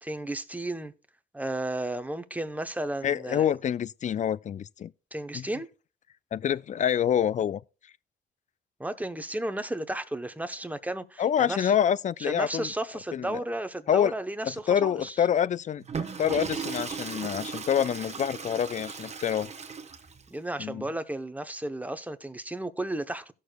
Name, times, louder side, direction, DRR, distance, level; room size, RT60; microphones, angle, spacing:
voice 1, 0.0-0.9 1.3-3.5 5.1-5.7 8.8-11.8 12.3-15.2 20.3-23.3, right 1 dB, 10° right, 0.8 m, -33 dB
voice 2, 3.0-4.9 5.3-5.5 6.3-7.6 11.2-12.7 13.1-13.4 13.9-14.1 14.4-15.8 16.2-19.5 20.6-20.8, left 9 dB, 40° left, 0.4 m, -26 dB
Water / Toilet flush, 15.8-20.3, right 5 dB, 35° right, 1.0 m, -37 dB
17.0 x 6.5 x 2.2 m
cardioid pair, 90°, 20 cm